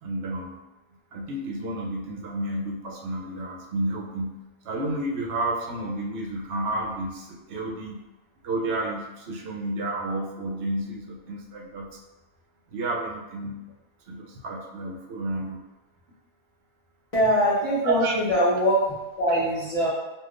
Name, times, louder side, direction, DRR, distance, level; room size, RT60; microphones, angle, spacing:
voice 1, 0.0-0.6 1.1-4.4 4.6-8.0 8.4-12.0 12.7-13.6 14.1-15.6 17.8-18.1 19.3-19.4, right 2 dB, 70° right, 0 dB, 0.8 m, -31 dB
voice 2, 17.1-19.9, equal, 35° left, -12 dB, 0.8 m, -23 dB
3.4 x 2.4 x 2.4 m, 1.0 s
omnidirectional pair, 1.2 m